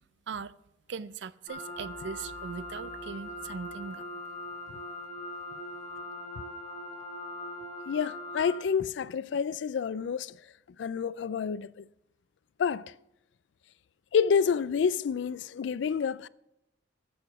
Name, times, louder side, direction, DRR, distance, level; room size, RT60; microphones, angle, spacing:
voice 1, 0.9-4.0, right 5 dB, 70° right, 0.5 m, -39 dB
sound 1, 1.5-8.6, left 1 dB, 40° left, 2.4 m, -41 dB
voice 2, 7.9-10.3 10.8-11.8 12.6-12.9 14.1-16.3, left 6 dB, 70° left, 0.3 m, -28 dB
14.0 x 6.8 x 6.0 m
head